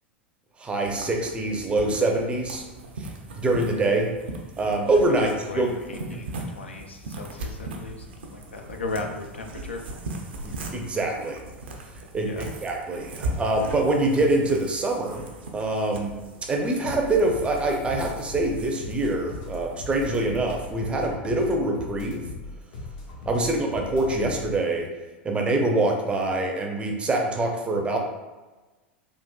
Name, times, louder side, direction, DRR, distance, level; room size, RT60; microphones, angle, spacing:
voice 1, 0.6-2.6 3.0-3.1 3.4-4.1 4.6-5.3 5.5-5.7 6.1-6.2 10.4-11.4 12.1-15.3 15.5-16.1 16.5-22.3 23.3-24.9 25.2-28.0, right 2 dB, 20° right, 2 dB, 0.5 m, -25 dB
sound 1, 0.8-20.8, right 2 dB, 70° right, 0.5 m, -39 dB
voice 2, 5.2-9.8 12.2-12.5, left 3 dB, 80° left, 4 dB, 0.4 m, -36 dB
sound 2, 16.8-24.6, left 2 dB, 55° left, 0.7 m, -39 dB
3.5 x 2.4 x 2.3 m, 1.2 s
figure-of-eight pair, 90°, 6 cm